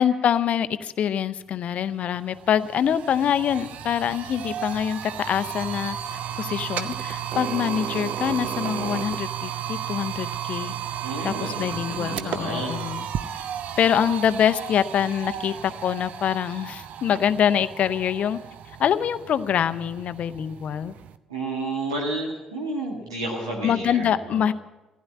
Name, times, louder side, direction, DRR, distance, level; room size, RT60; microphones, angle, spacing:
voice 1, 0.0-6.0 6.4-10.7 11.2-13.1 13.8-18.4 18.8-20.9 23.6-24.5, left 9 dB, 55° left, 13 dB, 0.6 m, -25 dB
sound 1, 1.7-1.8 2.1-21.2, right 9 dB, 60° right, 0.6 m, -33 dB
voice 2, 11.0-12.9 21.3-24.4, right 2 dB, 90° right, -2 dB, 1.8 m, -31 dB
15.0 x 10.5 x 8.4 m, 1.1 s
hypercardioid pair, 45°, 3 cm